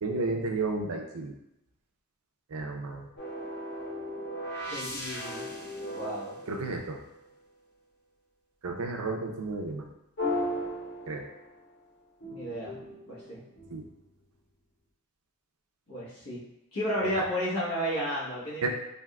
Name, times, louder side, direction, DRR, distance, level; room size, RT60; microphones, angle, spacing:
voice 1, 0.0-1.3 2.5-3.0 6.5-7.0 8.6-9.8 11.1-11.2 13.7-13.8 18.6-18.7, right 3 dB, 75° right, 3 dB, 0.5 m, -32 dB
sound 1, 3.2-7.3 10.2-11.7 12.2-14.0, left 1 dB, 50° left, 0.7 m, -36 dB
voice 2, 4.7-5.4 5.9-6.4 12.3-12.8 13.1-13.4 15.9-16.4 16.7-18.7, equal, 80° left, -8 dB, 1.2 m, -32 dB
3.5 x 2.5 x 2.3 m, 0.87 s
head